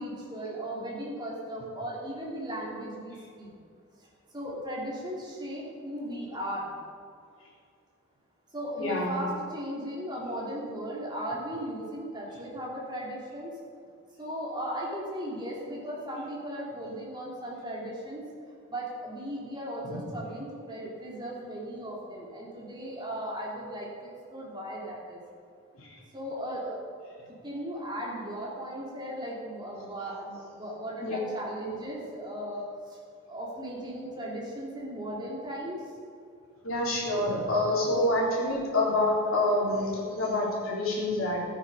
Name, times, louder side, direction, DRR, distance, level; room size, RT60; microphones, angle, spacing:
voice 1, 0.0-3.5 4.3-6.7 8.5-13.5 14.2-18.2 18.7-25.2 26.1-26.8 27.4-32.6 33.3-35.8, equal, 20° right, -4 dB, 3.1 m, -37 dB
voice 2, 8.8-9.2 25.8-25.9 31.0-31.2 36.6-41.4, left 1 dB, 70° left, -3 dB, 3.7 m, -27 dB
16.5 x 9.4 x 5.5 m, 2.3 s
head